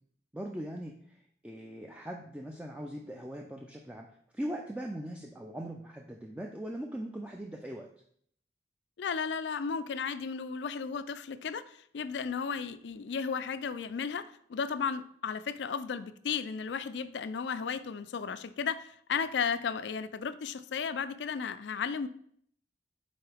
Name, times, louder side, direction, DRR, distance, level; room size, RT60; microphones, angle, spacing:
voice 1, 0.3-4.1 4.3-7.9, right 1 dB, 5° right, 1 dB, 0.4 m, -40 dB
voice 2, 9.0-22.1, left 6 dB, 90° left, 14 dB, 0.4 m, -34 dB
9.0 x 3.8 x 3.4 m, 0.64 s
head